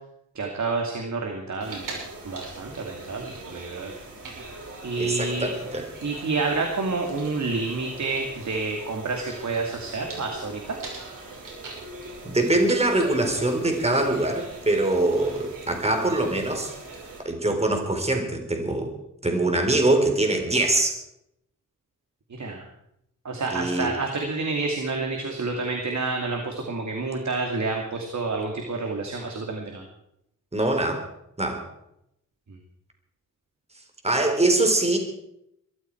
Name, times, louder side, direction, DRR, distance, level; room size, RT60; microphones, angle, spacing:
voice 1, 0.3-1.9 2.2-3.9 4.8-5.5 6.0-10.8 22.3-22.7 23.2-29.8, right 3 dB, 60° right, 2 dB, 2.5 m, -29 dB
sound 1, 1.6-17.2, right 2 dB, 80° right, 5.9 m, -41 dB
voice 2, 5.0-5.8 12.2-16.7 17.3-18.9 19.2-20.9 23.5-23.9 30.5-31.0 31.4-31.6 34.0-35.0, right 2 dB, 20° right, 4 dB, 3.7 m, -23 dB
21.5 x 14.0 x 4.6 m, 0.80 s
wide cardioid pair, 100°, 32 cm